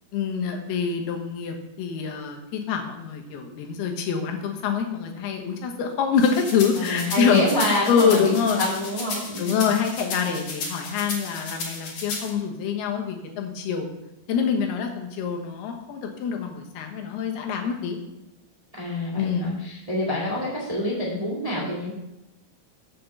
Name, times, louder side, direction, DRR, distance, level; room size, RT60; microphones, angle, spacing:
voice 1, 0.1-8.7 9.4-13.9 14.3-18.0 19.1-19.5, left 6 dB, 90° left, 3 dB, 3.2 m, -25 dB
sound 1, 6.2-12.3, left 3 dB, 50° left, 2.7 m, -34 dB
voice 2, 6.8-9.7 18.7-21.9, left 1 dB, 15° right, -3 dB, 1.1 m, -27 dB
7.5 x 6.0 x 6.8 m, 0.94 s
omnidirectional pair, 4.4 m